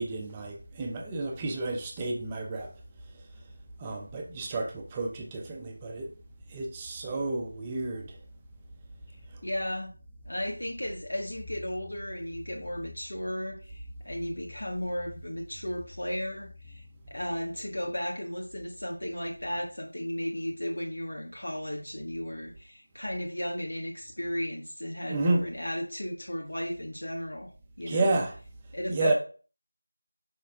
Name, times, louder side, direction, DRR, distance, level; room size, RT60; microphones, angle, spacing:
voice 1, 0.0-2.7 3.8-6.1 6.5-8.1 25.1-25.4 27.9-28.3 28.9-29.1, right 2 dB, 10° right, 0.6 m, -30 dB
voice 2, 9.4-9.9 10.3-27.5 27.8-28.2 28.7-29.1, equal, 70° left, 1.4 m, -35 dB
6.2 x 5.3 x 3.5 m
figure-of-eight pair, 175°, 0 cm